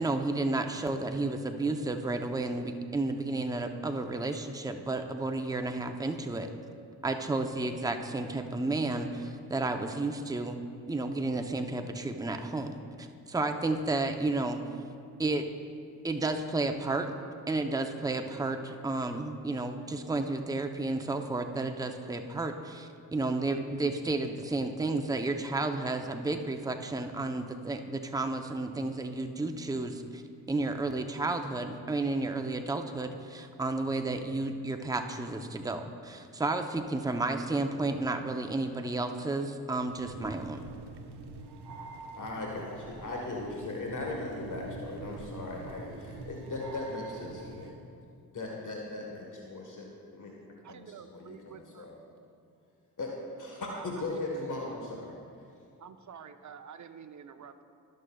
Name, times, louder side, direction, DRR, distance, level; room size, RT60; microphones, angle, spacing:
voice 1, 0.0-6.5 7.0-10.6 10.9-14.6 15.2-15.4 16.0-17.2 17.5-30.2 30.5-40.6, right 2 dB, 10° right, 6 dB, 0.7 m, -32 dB
sound 1, 39.9-47.7, right 2 dB, 75° right, 0.9 m, -45 dB
voice 2, 42.1-47.7 48.3-50.4 50.6-51.9 53.0-55.1, left 2 dB, 50° left, -1 dB, 1.4 m, -38 dB
voice 3, 50.2-51.9 53.7-54.5 54.7-54.8 55.8-57.6, right 7 dB, 45° right, 8 dB, 0.8 m, -49 dB
16.5 x 6.5 x 2.3 m, 2.4 s
supercardioid pair, 45°, 41 cm